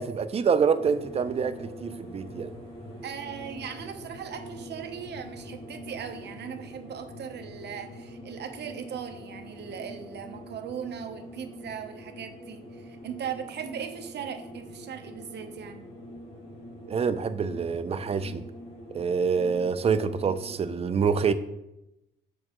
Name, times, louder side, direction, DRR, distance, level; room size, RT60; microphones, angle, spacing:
voice 1, 0.0-2.5 16.9-18.4 18.9-21.3, right 6 dB, 30° right, 12 dB, 0.4 m, -26 dB
sound 1, 0.7-20.7, equal, 25° left, 2.2 m, -44 dB
voice 2, 3.0-15.9, right 8 dB, 60° right, 6 dB, 0.8 m, -38 dB
7.3 x 4.4 x 3.0 m, 0.89 s
cardioid pair, 90°, 20 cm